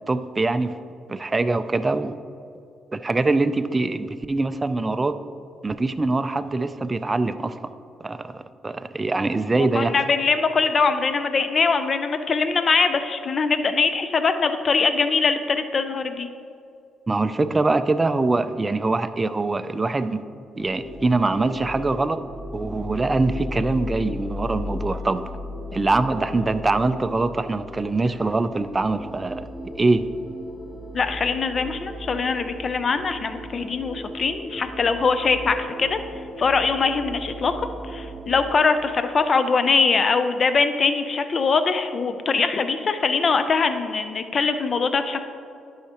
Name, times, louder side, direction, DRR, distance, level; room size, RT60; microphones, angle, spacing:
voice 1, 0.1-0.7 1.1-2.1 2.9-5.1 5.6-7.7 8.0-10.0 17.1-20.2 20.6-22.2 22.5-25.2 25.7-29.5 29.8-30.1, right 3 dB, 25° right, 11 dB, 0.3 m, -23 dB
voice 2, 9.6-16.3 30.9-36.0 36.4-37.5 37.9-45.2, left 4 dB, 45° left, 9 dB, 0.5 m, -22 dB
sound 1, 20.6-38.6, left 1 dB, 25° left, 1.5 m, -36 dB
10.5 x 5.6 x 2.9 m, 2.4 s
cardioid pair, 90°, 0 cm